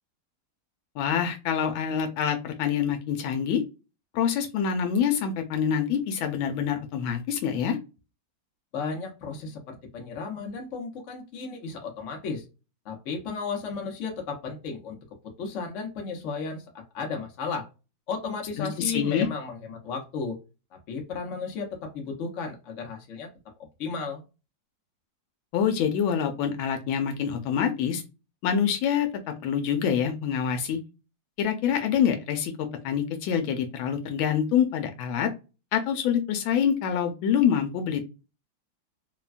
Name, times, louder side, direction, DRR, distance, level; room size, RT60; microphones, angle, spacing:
voice 1, 1.0-3.6 4.1-7.8 18.6-18.7 18.9-19.3 25.5-28.0 28.4-30.8 31.4-35.3 35.7-38.0, left 8 dB, 85° left, 6 dB, 1.4 m, -26 dB
voice 2, 8.7-12.4 12.8-15.0 15.4-17.7 18.1-20.4 20.9-23.3 23.8-24.2, left 5 dB, 60° left, 1 dB, 0.8 m, -34 dB
3.3 x 2.1 x 2.4 m, 0.29 s
omnidirectional pair, 2.1 m